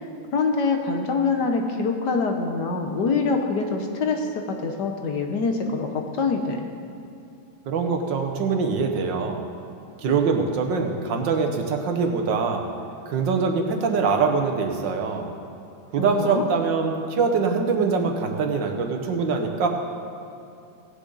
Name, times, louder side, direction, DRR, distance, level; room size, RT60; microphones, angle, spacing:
voice 1, 0.3-6.6 16.0-16.4, left 4 dB, 60° left, 4 dB, 1.4 m, -25 dB
voice 2, 7.7-9.4 10.0-12.7 13.1-15.3 15.9-19.7, right 5 dB, 65° right, 4 dB, 1.7 m, -23 dB
16.5 x 9.8 x 4.0 m, 2.7 s
omnidirectional pair, 2.3 m